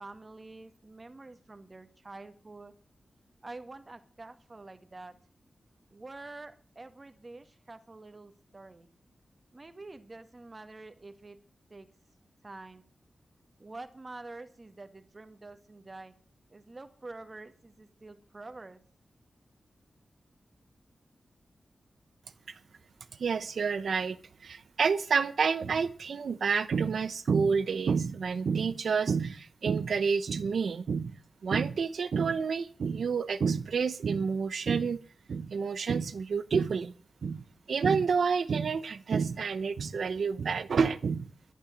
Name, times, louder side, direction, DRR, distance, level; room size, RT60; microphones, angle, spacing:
voice 1, 0.0-2.7 3.4-5.1 5.9-8.9 9.5-11.4 11.7-11.9 12.4-12.9 13.6-16.2 16.5-18.8, right 2 dB, 30° right, 1.9 m, -47 dB
voice 2, 23.2-31.2 31.4-35.0 35.3-36.9 37.2-41.3, right 5 dB, 85° right, 0.8 m, -29 dB
12.0 x 11.5 x 7.3 m
wide cardioid pair, 100°, 0 cm